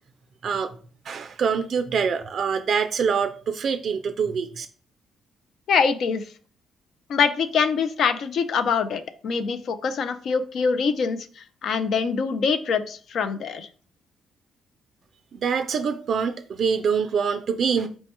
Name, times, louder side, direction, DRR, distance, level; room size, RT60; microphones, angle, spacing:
voice 1, 1.1-4.7 15.3-17.9, right 6 dB, 55° right, 0.3 m, -25 dB
voice 2, 5.7-6.3 7.1-13.7, left 6 dB, 65° left, 0.4 m, -24 dB
4.4 x 2.1 x 4.2 m
cardioid pair, 90°, 0 cm